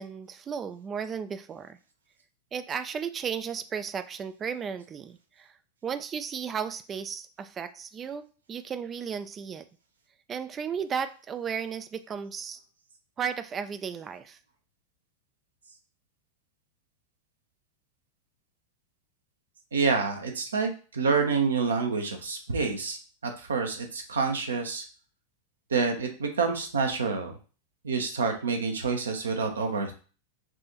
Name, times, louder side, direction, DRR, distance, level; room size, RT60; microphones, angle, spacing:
voice 1, 0.0-1.8 2.5-5.5 5.8-9.7 10.3-12.6 13.2-14.4, right 7 dB, 25° right, 11 dB, 0.3 m, -34 dB
voice 2, 19.7-24.8 25.7-27.3 27.8-29.9, right 5 dB, 70° right, 4 dB, 0.8 m, -28 dB
6.0 x 2.6 x 2.9 m, 0.37 s
figure-of-eight pair, 90°, 0 cm